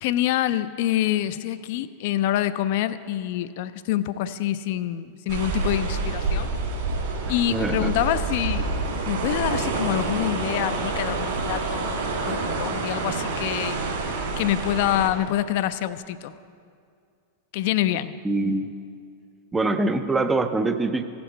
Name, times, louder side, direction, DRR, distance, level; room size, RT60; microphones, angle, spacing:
voice 1, 0.0-6.5 7.3-8.7 9.1-12.0 12.3-13.8 14.4-16.3 17.5-18.2, left 13 dB, 50° left, 14 dB, 0.4 m, -26 dB
sound 1, 5.3-15.1, right 3 dB, 50° right, 2.7 m, -27 dB
voice 2, 7.5-7.9 18.2-18.7 19.5-21.0, right 2 dB, 10° right, 9 dB, 0.5 m, -24 dB
16.0 x 7.4 x 4.5 m, 2.3 s
figure-of-eight pair, 90°, 0 cm